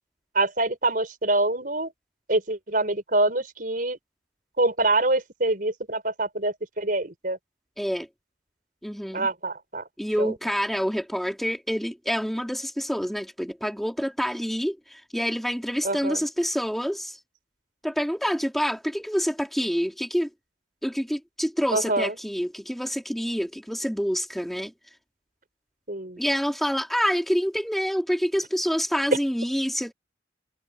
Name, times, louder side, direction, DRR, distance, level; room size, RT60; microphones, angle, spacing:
voice 1, 0.3-1.9 2.3-4.0 4.6-7.4 9.1-9.9 10.2-10.3 15.8-16.2 21.7-22.2 25.9-26.2, right 2 dB, 50° right, 6.1 m, -25 dB
voice 2, 7.8-8.1 8.8-9.3 10.0-17.2 17.8-20.3 20.8-24.7 26.2-29.9, equal, ahead, 3.9 m, -27 dB
head